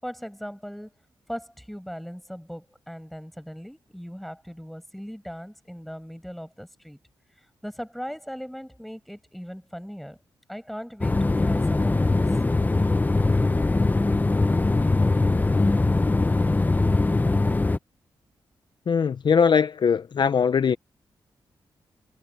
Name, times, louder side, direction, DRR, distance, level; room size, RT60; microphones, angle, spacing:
voice 1, 0.0-0.9 1.3-7.0 7.6-10.2 10.5-12.3, equal, ahead, 6.4 m, -39 dB
sound 1, 11.0-17.8, left 2 dB, 20° left, 0.6 m, -21 dB
voice 2, 18.9-20.8, left 6 dB, 55° left, 0.7 m, -21 dB
cardioid pair, 85°, 9 cm